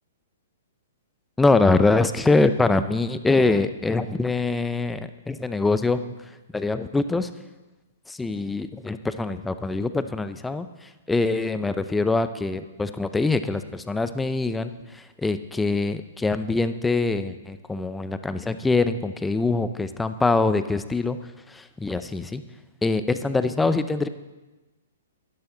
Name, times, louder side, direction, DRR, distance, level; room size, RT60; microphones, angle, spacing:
voice 1, 1.4-5.0 5.3-6.0 6.5-7.3 8.1-10.7 11.1-21.2 21.5-22.4 22.8-24.1, left 3 dB, 5° left, 11 dB, 0.6 m, -23 dB
12.0 x 11.5 x 3.9 m, 1.1 s
hypercardioid pair, 130°, 0 cm